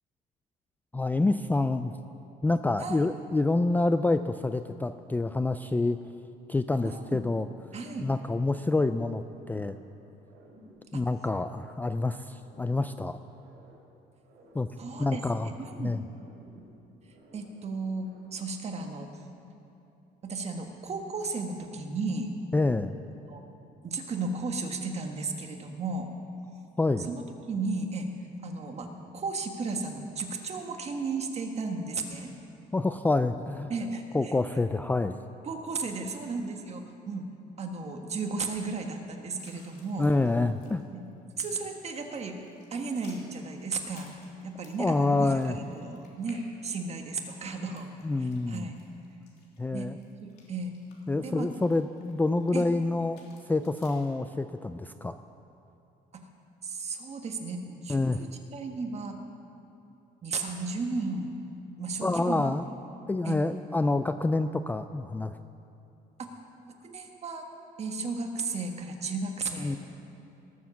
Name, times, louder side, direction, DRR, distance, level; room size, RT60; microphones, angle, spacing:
voice 1, 0.9-1.9 2.4-6.0 6.5-7.5 8.0-9.8 10.9-13.2 14.5-14.7 15.0-15.5 15.8-16.0 22.5-22.9 26.8-27.1 32.7-33.7 34.1-35.2 40.0-40.8 44.8-45.6 48.0-48.7 49.6-50.0 51.1-55.2 57.9-58.2 62.0-62.6 63.1-65.4 69.6-69.8, left 2 dB, 10° left, 10 dB, 0.3 m, -27 dB
voice 2, 6.8-7.2 7.7-8.1 10.9-11.0 14.8-16.0 17.3-19.1 20.2-22.3 23.1-23.5 23.8-26.1 27.1-28.1 28.4-32.3 33.7-34.3 35.4-37.3 37.6-40.1 40.9-41.0 41.4-42.4 42.7-44.1 44.4-47.9 48.2-48.7 49.7-49.9 50.2-50.7 51.2-51.5 52.5-52.7 56.1-56.3 56.6-58.0 58.5-59.2 60.2-61.4 61.8-62.6 63.2-63.4 66.2-66.4 66.8-67.4 67.8-69.8, right 3 dB, 40° right, 4 dB, 1.6 m, -34 dB
sound 1, 9.2-10.0 10.2-11.9 12.2-13.9 14.2-15.8 16.1-17.6 18.0-18.6, right 1 dB, 80° right, 3.4 m, -56 dB
sound 2, 39.4-41.6 41.9-44.9 45.3-52.5 52.9-54.0, left 4 dB, 75° left, 3.0 m, -59 dB
18.5 x 7.3 x 7.1 m, 2.8 s
cardioid pair, 110°, 17 cm